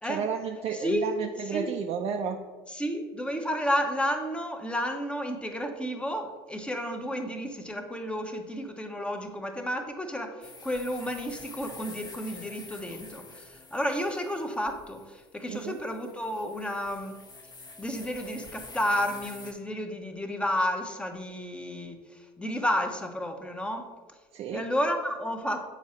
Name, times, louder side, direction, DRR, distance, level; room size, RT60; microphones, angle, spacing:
voice 1, 0.0-2.4 15.5-15.8 24.3-24.7, right 7 dB, 50° right, 2 dB, 0.6 m, -32 dB
voice 2, 0.7-1.2 1.5-1.7 2.7-17.2 17.8-23.9 24.5-25.7, equal, 10° left, 5 dB, 1.1 m, -31 dB
sound 1, 10.4-19.5, left 3 dB, 30° left, 1.2 m, -47 dB
7.2 x 4.8 x 4.4 m, 1.3 s
hypercardioid pair, 70°, 13 cm